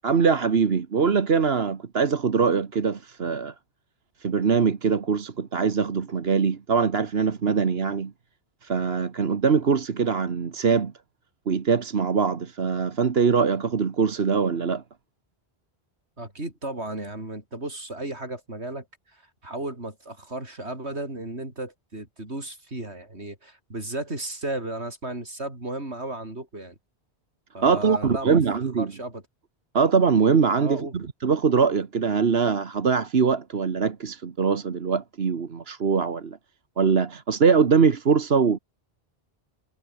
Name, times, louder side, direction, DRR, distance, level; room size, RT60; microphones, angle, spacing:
voice 1, 0.0-3.5 4.2-8.1 8.6-10.9 11.5-14.8 27.6-28.9 29.7-36.4 36.8-38.6, right 5 dB, 65° right, 1.6 m, -22 dB
voice 2, 16.2-18.9 19.1-26.7 27.5-28.4 28.8-29.2 30.6-30.9, right 2 dB, 85° right, 6.0 m, -34 dB
omnidirectional pair, 1.1 m